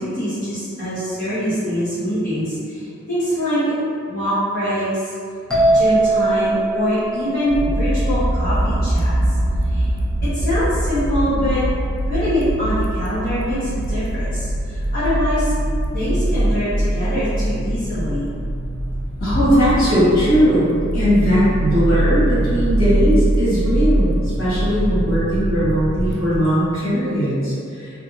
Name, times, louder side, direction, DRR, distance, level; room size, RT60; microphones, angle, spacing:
voice 1, 0.0-3.6 4.1-5.1 5.7-9.1 9.6-9.9 10.2-11.6 12.1-15.5 15.9-18.2, equal, 45° left, -14 dB, 0.9 m, -23 dB
sound 1, 5.5-9.1, right 2 dB, 5° left, 0.4 m, -21 dB
sound 2, 7.5-26.4, right 1 dB, 60° right, 0.4 m, -22 dB
voice 2, 19.2-24.1 24.4-27.9, equal, 85° left, -12 dB, 1.4 m, -18 dB
2.5 x 2.3 x 2.9 m, 2.4 s
head